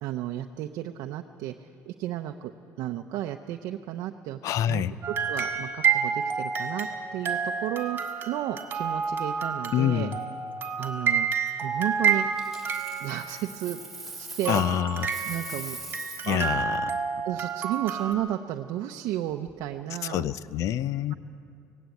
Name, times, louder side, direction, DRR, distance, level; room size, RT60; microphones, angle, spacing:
voice 1, 0.0-2.5 2.8-4.4 4.7-4.8 5.3-8.0 8.3-10.1 10.8-11.3 11.6-12.2 13.0-13.8 14.2-14.6 15.2-15.8 16.3-16.5 17.2-20.2, right 13 dB, 70° right, 5 dB, 0.7 m, -33 dB
voice 2, 4.4-4.9 9.7-10.2 14.5-15.1 16.2-16.8 20.0-21.1, left 11 dB, 55° left, 16 dB, 0.6 m, -26 dB
sound 1, 5.0-13.6 14.5-18.1, right 6 dB, 30° right, 1.6 m, -29 dB
Coin (dropping), 12.4-14.7 15.0-16.5 19.3-19.5, right 2 dB, 5° right, 3.2 m, -41 dB
18.0 x 17.0 x 8.4 m, 2.4 s
cardioid pair, 140°, 6 cm